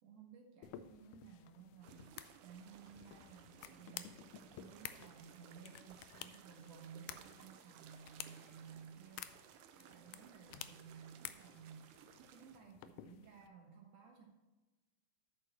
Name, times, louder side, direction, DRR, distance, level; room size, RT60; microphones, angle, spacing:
voice 1, 0.0-9.4 9.7-11.9 12.3-14.3, right 7 dB, 55° right, 0 dB, 2.0 m, -57 dB
sound 1, 0.6-13.5, left 12 dB, 85° left, 1.9 m, -54 dB
sound 2, 1.8-12.6, right 9 dB, 85° right, 1.8 m, -61 dB
9.1 x 6.9 x 4.3 m, 1.2 s
omnidirectional pair, 4.1 m